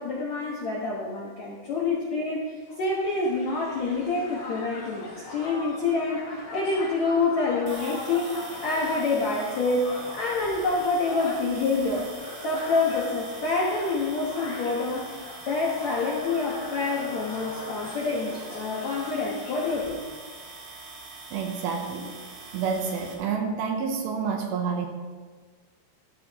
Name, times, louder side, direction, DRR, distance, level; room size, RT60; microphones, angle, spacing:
voice 1, 0.0-8.4 8.6-12.1 12.4-15.1 15.5-20.0, left 3 dB, 70° left, -4 dB, 1.7 m, -27 dB
Crowd, 2.7-20.1, left 2 dB, 45° left, 4.1 m, -40 dB
sound 1, 7.7-23.1, right 3 dB, 90° right, 4.1 m, -44 dB
voice 2, 21.3-22.1 22.5-24.9, right 6 dB, 75° right, 3 dB, 2.6 m, -28 dB
14.5 x 12.0 x 3.1 m, 1.5 s
omnidirectional pair, 4.9 m